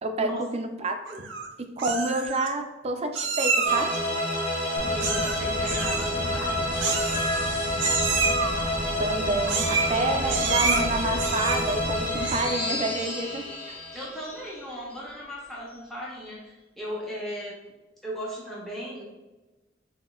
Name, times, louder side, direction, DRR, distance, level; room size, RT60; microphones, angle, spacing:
voice 1, 0.0-1.3 1.6-3.9 9.0-13.8, right 2 dB, 35° right, 5 dB, 0.4 m, -29 dB
Meow, 1.1-1.5 1.8-2.5 3.2-4.0 5.0-5.4 5.6-6.1 6.8-7.5 7.8-8.5 9.5-10.0 10.3-10.8 11.2-11.8 12.2-12.6, right 5 dB, 85° right, 0.6 m, -28 dB
sound 1, 3.6-15.1, left 1 dB, 35° left, 1.2 m, -29 dB
sound 2, 4.8-12.4, left 1 dB, 70° left, 0.6 m, -36 dB
voice 2, 4.8-6.8 9.8-10.8 13.9-17.6 18.0-19.1, equal, ahead, -6 dB, 0.7 m, -37 dB
5.9 x 2.2 x 2.3 m, 1.1 s
head